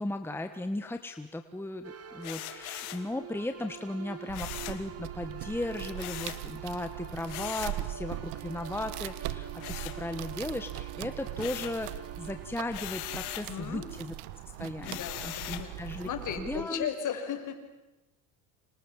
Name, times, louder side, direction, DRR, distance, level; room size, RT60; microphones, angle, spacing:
voice 1, 0.0-14.1 14.6-16.1 16.4-16.9, left 1 dB, 5° left, 7 dB, 1.5 m, -36 dB
sound 1, 1.8-13.6, right 8 dB, 35° right, 2.3 m, -47 dB
sound 2, 2.2-3.1 4.3-4.9 6.0-6.5 7.3-7.8 9.6-10.5 10.8-11.8 12.7-13.5 14.8-15.7, left 16 dB, 85° left, 2.5 m, -40 dB
sound 3, 4.3-16.6, right 15 dB, 75° right, 1.5 m, -41 dB
voice 2, 13.3-13.9 14.8-15.7 16.0-17.5, left 8 dB, 45° left, 6 dB, 6.0 m, -36 dB
30.0 x 26.5 x 7.4 m, 1.0 s
supercardioid pair, 115°, 42 cm